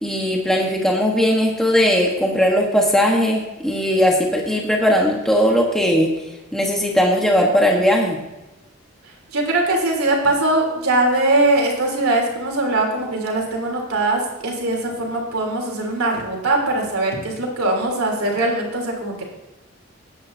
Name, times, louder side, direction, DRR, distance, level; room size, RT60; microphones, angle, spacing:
voice 1, 0.0-6.1 6.5-8.2, equal, ahead, -1 dB, 1.2 m, -18 dB
voice 2, 9.0-19.2, right 2 dB, 90° right, 0 dB, 3.3 m, -21 dB
16.0 x 10.5 x 2.7 m, 1.0 s
head